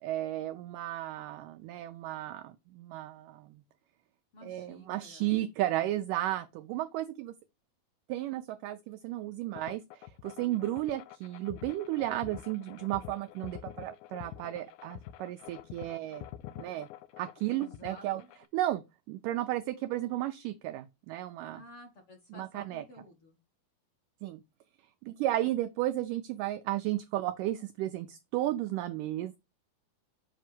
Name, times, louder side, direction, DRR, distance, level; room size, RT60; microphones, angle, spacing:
voice 1, 0.0-3.6 4.4-7.3 8.1-16.3 16.6-16.9 17.2-18.2 18.5-21.6 22.4-22.8 24.2-24.4 25.0-29.4, right 14 dB, 85° right, 1.8 m, -34 dB
voice 2, 4.3-5.5 17.6-18.3 21.5-23.4, left 2 dB, 50° left, 1.8 m, -52 dB
sound 1, 9.6-18.5, left 13 dB, 85° left, 2.5 m, -47 dB
7.7 x 2.8 x 6.0 m
omnidirectional pair, 4.3 m